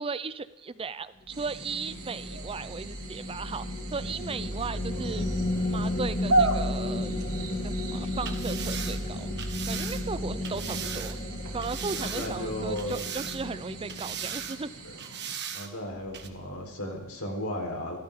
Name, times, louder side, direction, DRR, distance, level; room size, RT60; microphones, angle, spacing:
voice 1, 0.0-3.7 3.9-5.3 5.7-7.1 7.5-11.2 11.5-14.7, right 4 dB, 25° right, 15 dB, 0.5 m, -36 dB
sound 1, 1.3-14.8, left 1 dB, 40° left, 2.1 m, -34 dB
sound 2, 1.3-15.4, right 2 dB, 70° right, 3.1 m, -36 dB
sound 3, 8.2-11.2 11.6-12.5 12.8-13.6 13.9-14.6 15.0-15.7 16.1-16.3, right 8 dB, 50° right, 1.5 m, -38 dB
voice 2, 12.0-13.0 13.4-13.5 14.8-15.0 15.5-18.0, left 1 dB, 70° left, 2 dB, 3.8 m, -35 dB
28.0 x 14.0 x 3.7 m, 1.1 s
head